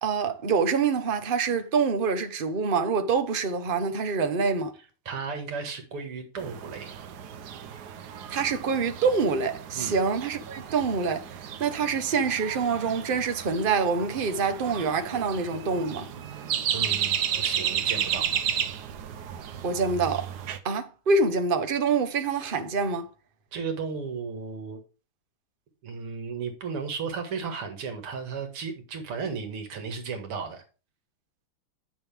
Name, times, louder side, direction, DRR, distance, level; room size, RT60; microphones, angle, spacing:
voice 1, 0.0-4.7 8.3-16.1 19.6-20.3 20.6-23.1, right 5 dB, 40° right, 0.8 m, -26 dB
voice 2, 5.1-6.9 9.7-10.0 16.7-18.4 23.5-24.8 25.8-30.6, right 5 dB, 85° right, 2.8 m, -34 dB
sound 1, 6.4-20.6, right 9 dB, 60° right, 1.2 m, -33 dB
8.8 x 6.8 x 3.5 m
omnidirectional pair, 2.4 m